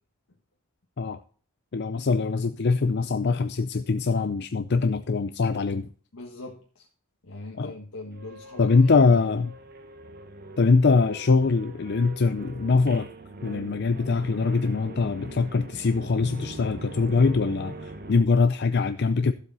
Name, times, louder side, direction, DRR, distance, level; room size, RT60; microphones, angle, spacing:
voice 1, 1.7-5.9 7.6-7.7 8.6-9.6 10.6-13.1 13.4-19.3, left 4 dB, 50° left, 10 dB, 0.5 m, -23 dB
voice 2, 6.1-6.9 7.2-8.7 8.9-9.0, left 2 dB, 80° left, 0 dB, 1.6 m, -41 dB
sound 1, 8.1-18.3, right 2 dB, 45° right, 1.3 m, -42 dB
12.5 x 7.7 x 4.0 m, 0.41 s
head